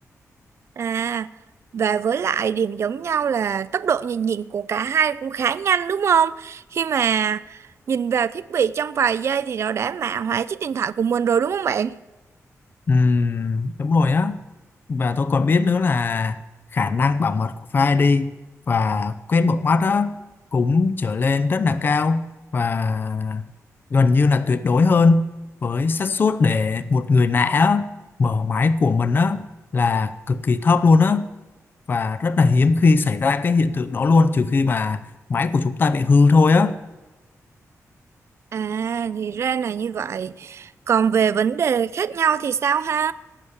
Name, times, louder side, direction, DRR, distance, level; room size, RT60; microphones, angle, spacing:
voice 1, 0.8-1.3 1.7-7.6 7.9-12.0 38.5-43.1, right 7 dB, 55° right, 17 dB, 0.4 m, -23 dB
voice 2, 12.9-14.4 14.9-16.4 16.7-18.3 18.7-20.2 20.5-22.2 22.5-23.4 23.9-25.2 25.6-27.9 28.2-29.5 29.7-31.3 31.9-35.0 35.3-36.8, left 4 dB, 40° left, 13 dB, 0.5 m, -19 dB
17.5 x 6.9 x 7.2 m, 1.2 s
wide cardioid pair, 170°, 6 cm